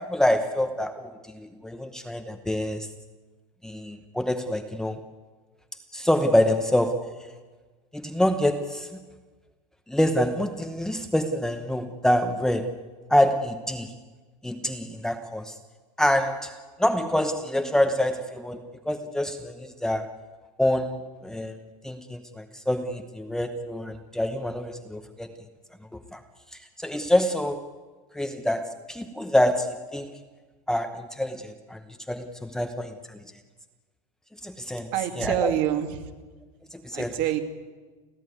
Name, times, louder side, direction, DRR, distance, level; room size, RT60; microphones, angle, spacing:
voice 1, 0.0-2.9 3.6-5.0 5.9-7.3 7.9-8.9 9.9-12.8 13.1-13.9 14.4-15.5 16.0-20.1 20.6-21.6 21.8-25.3 26.1-26.2 26.5-27.6 28.1-30.1 30.7-31.8 32.1-33.2 34.4-35.5 36.7-37.2, left 1 dB, 5° left, 6 dB, 0.9 m, -26 dB
voice 2, 34.9-36.1 36.9-37.4, right 12 dB, 50° right, 6 dB, 2.3 m, -26 dB
30.0 x 14.0 x 9.5 m, 1.4 s
supercardioid pair, 165°, 18 cm